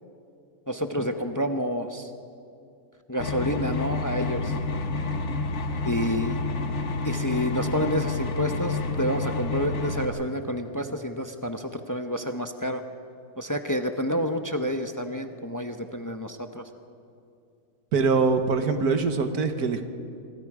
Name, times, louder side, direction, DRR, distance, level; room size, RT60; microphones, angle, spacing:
voice 1, 0.7-2.1 3.1-4.5 5.8-6.4 7.0-12.8 13.4-16.6, equal, 15° left, 6 dB, 0.7 m, -29 dB
sound 1, 3.2-10.0, left 3 dB, 50° left, 1.5 m, -29 dB
voice 2, 17.9-19.8, right 4 dB, 90° right, 7 dB, 1.9 m, -23 dB
25.5 x 24.0 x 5.0 m, 2.6 s
omnidirectional pair, 1.6 m